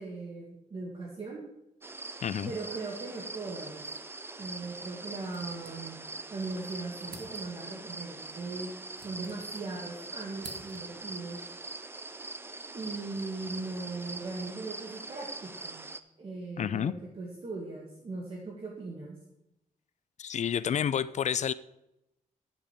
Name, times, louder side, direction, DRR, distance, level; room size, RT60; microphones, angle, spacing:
voice 1, 0.0-1.4 2.4-3.8 4.4-6.0 6.3-11.4 12.7-15.9 16.2-19.2, right 3 dB, 40° right, 1.8 m, -39 dB
sound 1, 1.8-16.0, right 3 dB, 15° right, 0.5 m, -43 dB
voice 2, 2.2-2.5 16.6-17.0 20.2-21.5, left 8 dB, 55° left, 0.4 m, -29 dB
sound 2, 5.3-6.3 6.6-6.7 7.0-7.7 8.6-9.9 10.1-11.1, right 4 dB, 75° right, 1.5 m, -51 dB
11.0 x 5.1 x 7.4 m
wide cardioid pair, 150°, 14 cm